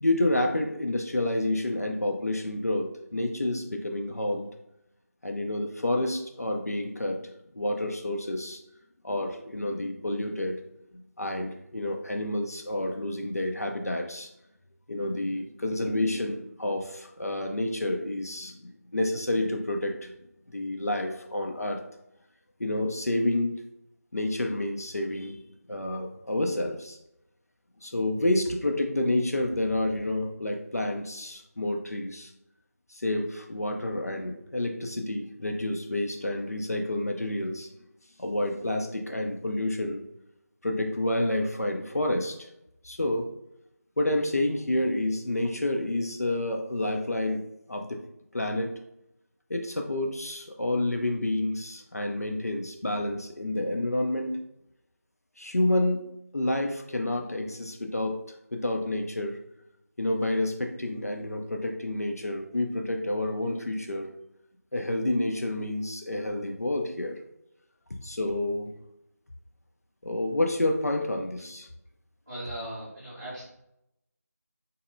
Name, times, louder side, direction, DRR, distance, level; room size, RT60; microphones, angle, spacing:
voice 1, 0.0-4.5 5.2-8.6 9.0-10.6 11.2-14.3 14.9-20.1 20.5-21.8 22.6-23.6 24.1-25.4 25.7-27.0 27.8-32.3 32.9-37.7 38.2-40.0 40.6-42.5 42.8-43.3 44.0-47.4 47.7-48.0 48.3-48.7 49.5-54.4 55.4-56.0 56.3-58.2 58.5-59.4 60.0-64.1 64.7-67.2 68.0-68.7 70.0-71.7, left 1 dB, 60° left, 3 dB, 0.5 m, -29 dB
voice 2, 72.2-73.4, right 1 dB, 10° right, -16 dB, 1.0 m, -38 dB
4.1 x 3.1 x 2.6 m, 0.83 s
figure-of-eight pair, 180°, 9 cm